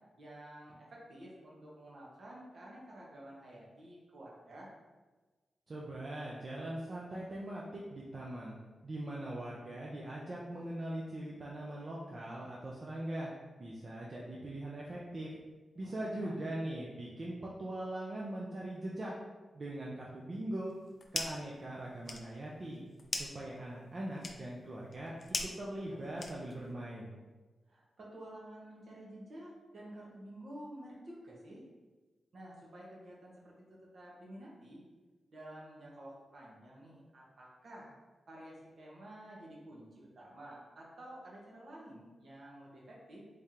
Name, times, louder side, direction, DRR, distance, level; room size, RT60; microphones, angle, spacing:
voice 1, 0.2-4.7 15.7-16.5 25.3-25.4 25.8-26.0 27.7-31.6 32.3-34.8 35.3-38.0 38.3-43.2, right 1 dB, 65° right, -4 dB, 1.1 m, -51 dB
voice 2, 5.7-8.6 8.8-13.3 13.6-15.3 15.7-19.1 19.5-20.7 21.1-22.8 23.1-25.1 25.4-27.2, right 1 dB, 45° right, -5 dB, 0.6 m, -41 dB
sound 1, 20.7-21.5 21.8-26.7, left 3 dB, 55° left, 0.4 m, -41 dB
3.6 x 3.3 x 2.8 m, 1.3 s
cardioid pair, 60°, 0 cm